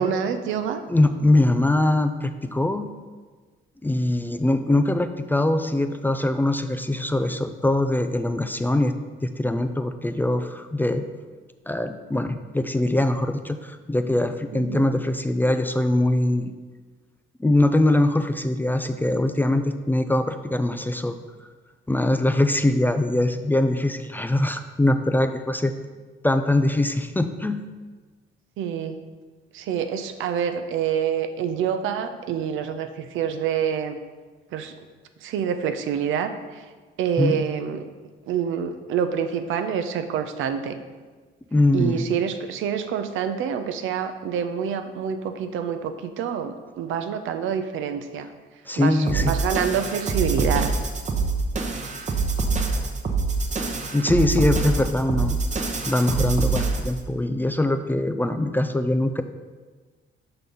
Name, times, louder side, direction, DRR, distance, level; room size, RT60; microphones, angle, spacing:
voice 1, 0.0-0.8 14.5-14.9 28.6-29.0 29.5-34.0 34.5-34.7 35.2-36.6 37.0-37.8 38.3-40.8 41.7-48.3 48.8-50.7, right 8 dB, 80° right, 8 dB, 0.6 m, -27 dB
voice 2, 0.9-2.9 3.8-9.0 9.2-11.1 11.7-16.5 17.4-21.2 21.9-25.7 26.2-27.6 37.2-37.4 41.5-42.1 48.7-49.4 53.9-55.4 55.8-59.2, left 1 dB, 10° left, 8 dB, 0.3 m, -22 dB
sound 1, 49.1-57.0, right 4 dB, 35° right, 0.9 m, -25 dB
6.0 x 3.9 x 5.3 m, 1.4 s
cardioid pair, 90°, 20 cm